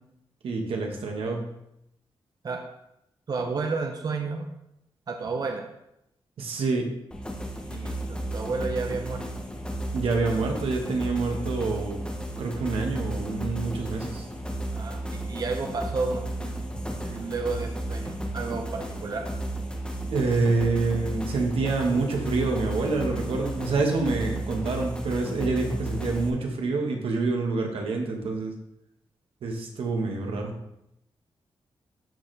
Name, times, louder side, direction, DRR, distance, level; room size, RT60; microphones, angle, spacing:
voice 1, 0.4-1.4 6.4-6.9 9.9-14.2 20.1-28.5 29.4-30.5, right 3 dB, 85° right, 2 dB, 1.4 m, -27 dB
voice 2, 3.3-4.5 5.1-5.7 7.6-9.2 14.7-16.5 17.0-19.2, right 4 dB, 45° right, 3 dB, 0.7 m, -31 dB
sound 1, 7.1-26.3, right 1 dB, 10° left, 0.9 m, -33 dB
12.5 x 4.2 x 3.4 m, 0.82 s
wide cardioid pair, 125°, 9 cm